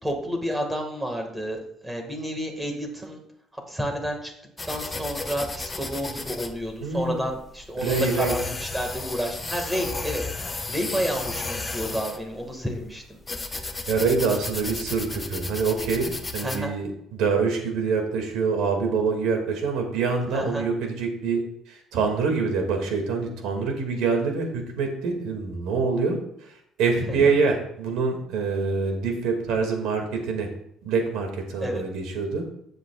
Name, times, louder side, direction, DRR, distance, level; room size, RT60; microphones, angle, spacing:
voice 1, 0.0-3.2 3.7-4.3 4.7-13.2 16.4-16.7 20.3-20.6 27.0-27.3 31.6-31.8, equal, 10° right, 3 dB, 2.0 m, -30 dB
sound 1, 4.6-16.6, left 3 dB, 15° left, 0.8 m, -34 dB
voice 2, 6.8-7.2 7.8-8.3 13.9-21.4 21.7-26.5 26.8-30.5 30.8-32.4, right 4 dB, 85° right, 3 dB, 2.4 m, -25 dB
15.0 x 8.0 x 2.5 m, 0.75 s
cardioid pair, 145°, 0 cm